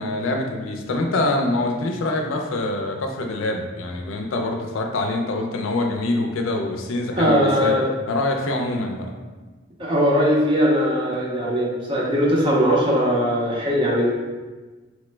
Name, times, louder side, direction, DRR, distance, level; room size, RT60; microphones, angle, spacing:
voice 1, 0.0-7.7 8.1-9.1, left 2 dB, 90° left, 2 dB, 0.4 m, -25 dB
voice 2, 7.2-7.8 9.8-14.1, equal, 25° right, -4 dB, 0.5 m, -20 dB
3.1 x 2.0 x 3.2 m, 1.3 s
head